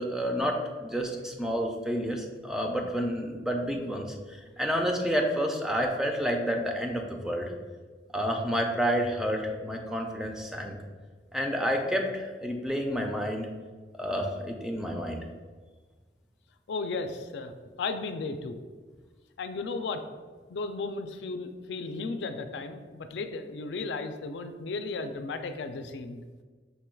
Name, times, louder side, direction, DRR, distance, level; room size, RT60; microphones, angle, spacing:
voice 1, 0.0-7.5 8.1-10.7 11.3-13.5 14.0-15.2, equal, 5° right, 2 dB, 0.4 m, -29 dB
voice 2, 16.7-17.5 17.8-18.6 19.4-20.0 20.5-26.2, left 3 dB, 80° left, 8 dB, 0.4 m, -35 dB
5.3 x 2.3 x 4.4 m, 1.4 s
head